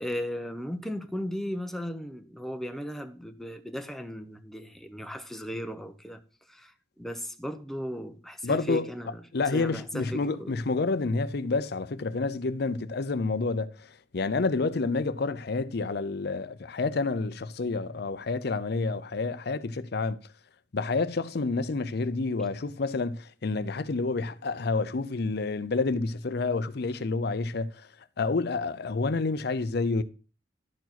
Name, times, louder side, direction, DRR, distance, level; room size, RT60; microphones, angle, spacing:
voice 1, 0.0-6.2 6.5-9.2 9.5-10.6, equal, ahead, 0.8 m, -36 dB
voice 2, 8.4-8.9 9.3-13.7 14.1-20.2 20.7-27.7 28.2-30.0, left 3 dB, 65° left, 0.6 m, -29 dB
12.0 x 4.7 x 5.9 m
head